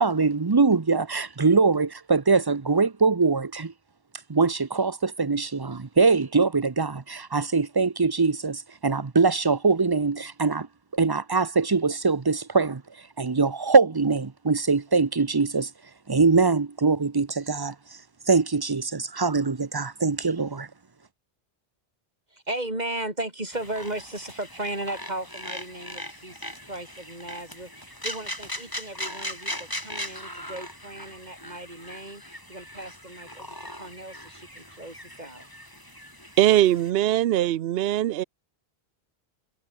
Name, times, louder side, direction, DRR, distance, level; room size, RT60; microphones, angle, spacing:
voice 1, 0.0-3.7 4.3-10.7 10.9-12.8 13.2-15.7 16.1-17.7 18.3-20.7, right 4 dB, 25° right, 0.7 m, -22 dB
voice 2, 22.3-35.5, right 1 dB, 40° right, 4.4 m, -36 dB
sound 1, 23.5-36.9, equal, 20° left, 7.9 m, -39 dB
voice 3, 36.4-38.2, right 13 dB, 70° right, 0.8 m, -21 dB
omnidirectional pair, 1.1 m